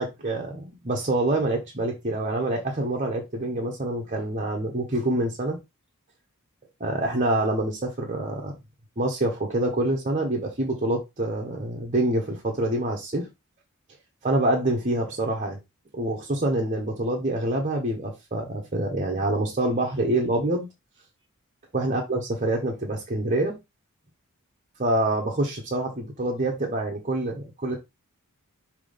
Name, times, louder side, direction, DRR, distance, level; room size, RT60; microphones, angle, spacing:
voice 1, 0.0-5.6 6.8-8.5 9.0-13.3 14.2-15.6 15.9-20.7 21.7-23.6 24.8-27.8, right 1 dB, 35° right, 1.2 m, -26 dB
6.0 x 3.1 x 5.1 m
head